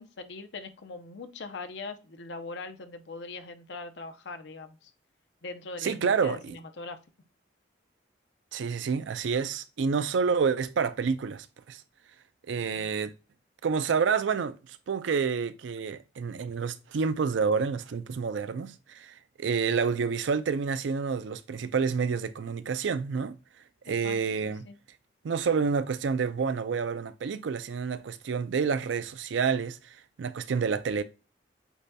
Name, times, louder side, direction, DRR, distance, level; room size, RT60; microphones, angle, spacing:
voice 1, 0.0-4.9 5.4-7.0 23.8-24.8, left 3 dB, 70° left, 0.6 m, -41 dB
voice 2, 5.8-6.6 8.5-11.8 12.5-13.1 13.6-23.3 23.9-24.6 25.2-31.0, right 5 dB, 80° right, 0.4 m, -29 dB
8.2 x 2.7 x 2.2 m
head